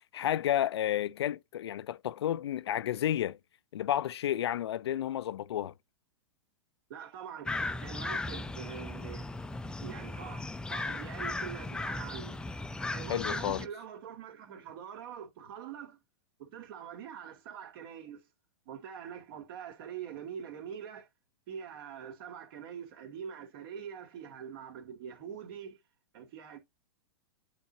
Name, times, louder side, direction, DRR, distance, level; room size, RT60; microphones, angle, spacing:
voice 1, 0.0-3.4 3.7-5.7 13.1-13.7, left 11 dB, 75° left, 0.5 m, -31 dB
voice 2, 6.9-9.3 9.8-12.4 12.9-16.0 16.4-18.2 18.7-21.1 21.5-25.8 26.1-26.6, right 8 dB, 55° right, 2.5 m, -44 dB
sound 1, 7.4-13.7, left 2 dB, 5° left, 0.5 m, -37 dB
11.0 x 3.7 x 2.8 m
hypercardioid pair, 115°, 14 cm